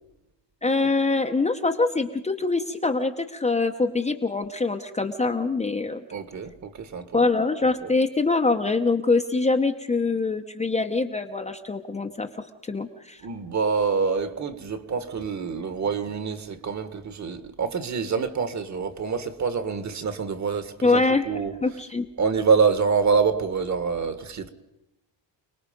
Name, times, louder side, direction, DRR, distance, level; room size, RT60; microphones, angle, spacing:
voice 1, 0.6-6.0 7.1-12.3 12.6-13.2 20.8-21.3 21.6-22.1, left 3 dB, 15° left, 0.9 m, -24 dB
voice 2, 6.1-7.2 7.8-7.9 13.2-21.5 22.2-24.5, right 5 dB, 40° right, 1.7 m, -26 dB
29.0 x 19.5 x 5.3 m
cardioid pair, 165°, 45 cm